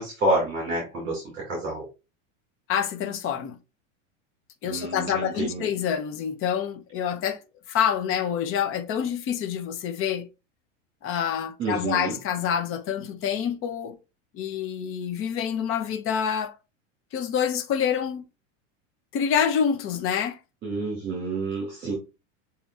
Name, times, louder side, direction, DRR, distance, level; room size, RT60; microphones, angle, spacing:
voice 1, 0.0-1.9 4.6-5.6 11.6-12.2 20.6-21.9, right 2 dB, 30° right, 2.2 m, -28 dB
voice 2, 2.7-3.6 4.6-7.4 7.7-10.3 11.0-14.0 14.3-16.6 17.1-18.2 19.1-20.4, left 8 dB, 35° left, 0.8 m, -27 dB
6.7 x 2.9 x 2.4 m
supercardioid pair, 130°, 38 cm